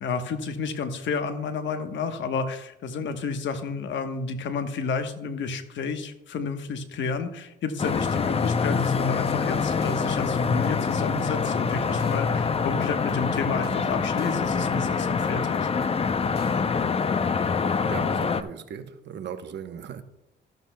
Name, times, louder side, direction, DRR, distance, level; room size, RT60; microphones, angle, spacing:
voice 1, 0.0-15.7, left 5 dB, 70° left, 1.1 m, -31 dB
sound 1, 7.8-18.4, left 5 dB, 30° left, 0.5 m, -25 dB
sound 2, 8.4-16.6, left 2 dB, 55° left, 1.3 m, -47 dB
voice 2, 17.9-20.0, right 8 dB, 65° right, 0.9 m, -38 dB
13.5 x 12.0 x 2.2 m
cardioid pair, 90°, 20 cm